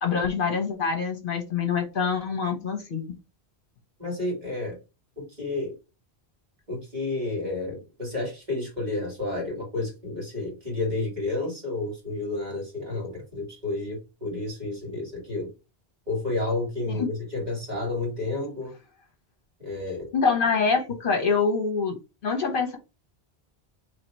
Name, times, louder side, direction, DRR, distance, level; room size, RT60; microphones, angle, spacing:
voice 1, 0.0-3.0 16.9-17.1 20.1-21.9 22.2-22.8, left 5 dB, 60° left, 3 dB, 1.1 m, -25 dB
voice 2, 4.0-4.8 5.2-5.7 6.7-15.5 16.1-18.7 19.6-20.1, left 2 dB, 45° right, -2 dB, 2.2 m, -31 dB
3.3 x 2.8 x 4.3 m, 0.28 s
omnidirectional pair, 1.1 m